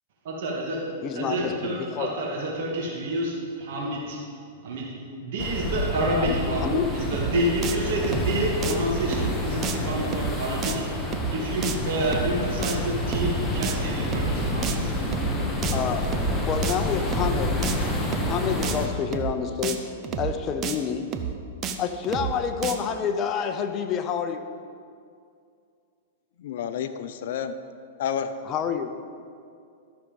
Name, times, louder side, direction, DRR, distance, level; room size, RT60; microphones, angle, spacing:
voice 1, 0.2-0.8 1.1-4.2 4.6-4.9 5.2-15.0, right 1 dB, 60° right, -3 dB, 2.4 m, -28 dB
voice 2, 1.0-2.1 6.3-6.4 6.6-6.8 15.7-16.1 16.5-17.6 18.2-19.9 20.2-21.1 21.8-24.5 28.5-28.9, left 7 dB, 30° left, 7 dB, 0.8 m, -28 dB
sound 1, 5.4-18.9, left 1 dB, 10° left, 1.3 m, -28 dB
sound 2, 7.1-7.3 7.6-7.8 8.0-8.3 8.6-8.7 9.1-9.3 9.6-9.8 10.0-10.3 10.6-10.8 11.1-11.3 11.6-11.8 12.0-12.3 12.6-12.8 13.1-13.3 13.6-13.7 14.0-14.3 14.6-14.8 15.1-15.3 15.6-15.8 16.0-16.3 16.6-16.8 17.1-17.3 17.6-17.8 18.0-18.3 18.6-18.8 19.1-19.3 19.6-19.8 20.0-20.3 20.6-20.7 21.1-21.3 21.6-21.8 22.0-22.3 22.6-22.7, right 8 dB, 30° right, 0.8 m, -30 dB
voice 3, 26.4-27.5 28.0-28.3, left 8 dB, 65° left, 8 dB, 0.6 m, -30 dB
13.0 x 6.5 x 5.4 m, 2.4 s
hypercardioid pair, 135°, 0 cm